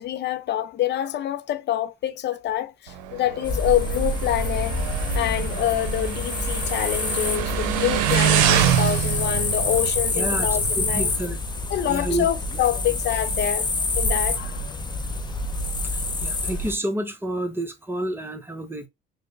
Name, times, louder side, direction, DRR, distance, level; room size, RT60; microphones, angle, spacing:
voice 1, 0.0-4.8 5.1-11.1 11.7-13.7 14.0-14.8, left 11 dB, 55° left, 0.7 m, -26 dB
Motorcycle, 2.9-11.2, right 10 dB, 80° right, 0.6 m, -26 dB
sound 1, 3.4-16.7, left 2 dB, 20° left, 0.8 m, -27 dB
voice 2, 10.1-10.5 10.8-11.4 11.9-12.4 15.8-18.9, right 1 dB, 10° right, 0.9 m, -29 dB
6.1 x 2.2 x 2.6 m
hypercardioid pair, 55°, 21 cm